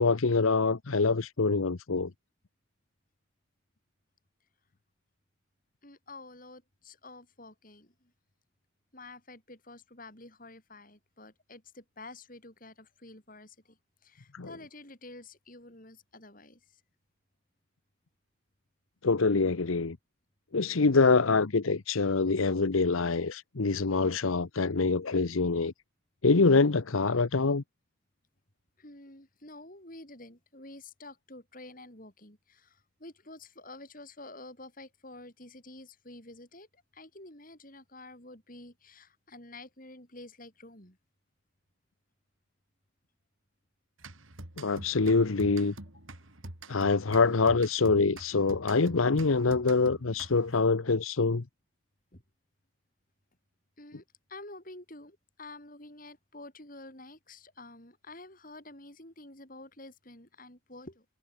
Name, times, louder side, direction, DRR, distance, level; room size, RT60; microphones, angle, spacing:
voice 1, 0.0-2.1 14.3-14.5 19.0-20.0 20.5-25.7 26.2-27.6 44.6-45.7 46.7-51.4, left 4 dB, 85° left, 0.9 m, -25 dB
voice 2, 5.8-8.1 8.9-16.8 28.8-41.0 52.1-52.2 53.8-61.0, left 2 dB, 40° left, 6.0 m, -49 dB
sound 1, 44.0-50.7, right 2 dB, 75° right, 4.1 m, -46 dB
head